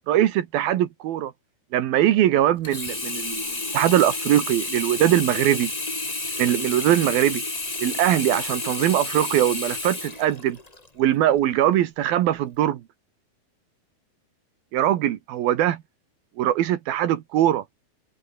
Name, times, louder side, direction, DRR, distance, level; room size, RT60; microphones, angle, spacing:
voice 1, 0.1-1.3 1.7-5.7 6.4-7.4 7.8-10.6 11.0-12.8 14.7-15.8 16.4-17.6, right 12 dB, 75° right, 3.1 m, -21 dB
Sink (filling or washing), 2.6-10.9 11.4-11.5, left 2 dB, 20° left, 1.0 m, -30 dB
omnidirectional pair, 4.4 m